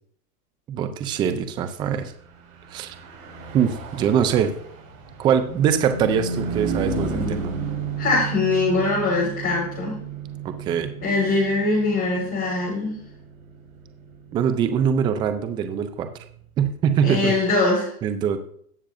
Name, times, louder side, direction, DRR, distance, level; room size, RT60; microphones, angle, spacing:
voice 1, 0.7-2.1 2.7-3.0 3.5-4.5 5.2-7.5 10.4-10.9 14.3-16.1 16.6-17.3 18.0-18.4, right 8 dB, 10° right, 9 dB, 0.3 m, -23 dB
Car passing by / Truck, 2.5-16.2, right 4 dB, 65° right, 3.9 m, -33 dB
voice 2, 8.0-9.9 11.0-12.9 17.0-17.9, left 3 dB, 30° left, -6 dB, 4.5 m, -22 dB
18.0 x 6.5 x 2.6 m, 0.63 s
hypercardioid pair, 125°, 45 cm